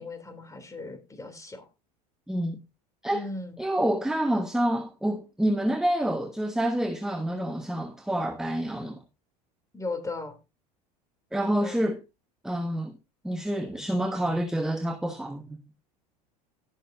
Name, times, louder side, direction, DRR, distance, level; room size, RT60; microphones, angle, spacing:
voice 1, 0.0-1.7 3.1-3.6 9.7-10.4 11.6-11.8, left 3 dB, 15° left, 3.2 m, -37 dB
voice 2, 2.3-2.6 3.0-3.3 3.6-9.0 11.3-12.0 12.4-12.9 13.2-15.6, right 1 dB, ahead, 1.1 m, -28 dB
17.5 x 6.7 x 2.7 m
hypercardioid pair, 80°, 21 cm